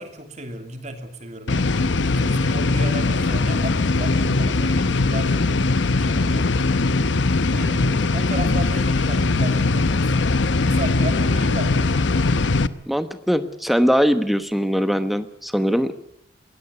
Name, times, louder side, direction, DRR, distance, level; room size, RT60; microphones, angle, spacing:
voice 1, 0.0-5.5 5.9-6.5 7.4-10.1 10.6-12.0, right 1 dB, 40° right, 6 dB, 2.9 m, -34 dB
sound 1, 1.5-12.7, left 3 dB, 75° left, 0.8 m, -20 dB
voice 2, 12.9-15.9, equal, ahead, 10 dB, 1.1 m, -21 dB
21.0 x 16.5 x 8.3 m, 0.70 s
head